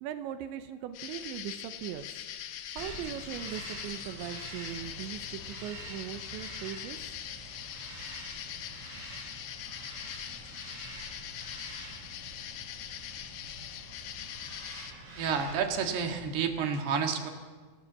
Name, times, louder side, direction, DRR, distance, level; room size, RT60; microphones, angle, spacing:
voice 1, 0.0-2.1 2.8-7.0, right 10 dB, 90° right, 8 dB, 3.3 m, -39 dB
sound 1, 0.9-14.9, left 11 dB, 70° left, 2.6 m, -42 dB
Bird vocalization bird call bird song, 2.8-16.5, right 2 dB, 30° right, 7.0 m, -46 dB
voice 2, 15.2-17.3, right 6 dB, 65° right, 4 dB, 3.8 m, -30 dB
28.0 x 18.0 x 7.4 m, 1.4 s
omnidirectional pair, 5.1 m